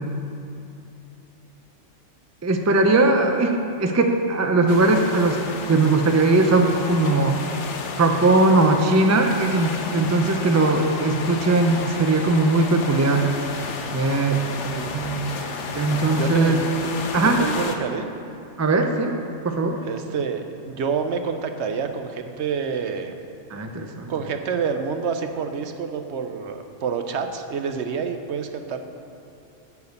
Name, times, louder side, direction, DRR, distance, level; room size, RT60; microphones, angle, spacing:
voice 1, 2.4-7.4 8.0-13.3 13.9-14.4 14.9-15.3 15.7-16.6 17.1-17.4 18.6-19.1 19.4-19.8 23.5-24.1, right 2 dB, 25° right, 5 dB, 0.3 m, -20 dB
sound 1, 4.7-17.8, left 4 dB, 70° left, 1.1 m, -32 dB
voice 2, 14.6-15.0 16.2-16.6 17.2-18.1 19.8-23.1 24.1-28.8, right 6 dB, 65° right, 7 dB, 0.9 m, -28 dB
10.5 x 4.8 x 8.0 m, 2.7 s
omnidirectional pair, 1.3 m